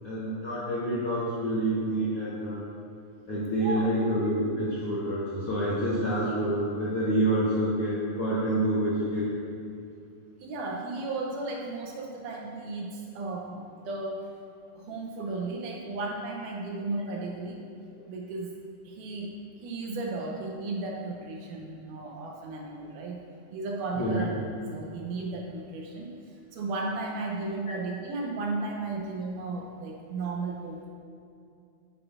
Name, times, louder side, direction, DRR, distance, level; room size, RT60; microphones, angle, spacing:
voice 1, 0.0-2.6 3.3-9.2 24.0-24.2, right 1 dB, 65° left, -9 dB, 1.5 m, -27 dB
voice 2, 3.6-3.9 10.4-14.3 14.8-17.6 18.1-18.6 18.9-23.2 23.5-24.4 24.7-30.9, right 3 dB, 75° right, 0 dB, 2.0 m, -35 dB
8.4 x 6.9 x 2.4 m, 2.5 s
omnidirectional pair, 3.9 m